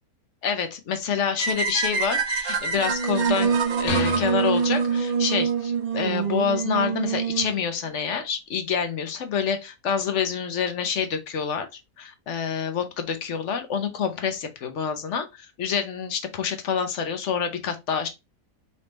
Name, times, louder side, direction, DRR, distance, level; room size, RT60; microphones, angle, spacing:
voice 1, 0.4-11.7 12.0-18.1, left 7 dB, 55° left, 0.9 m, -27 dB
sound 1, 1.4-5.5, right 4 dB, 65° right, 1.3 m, -28 dB
Singing, 2.7-7.6, right 6 dB, 45° right, 0.7 m, -25 dB
sound 2, 3.9-5.5, left 9 dB, 75° left, 0.6 m, -32 dB
4.2 x 3.5 x 2.9 m
omnidirectional pair, 1.7 m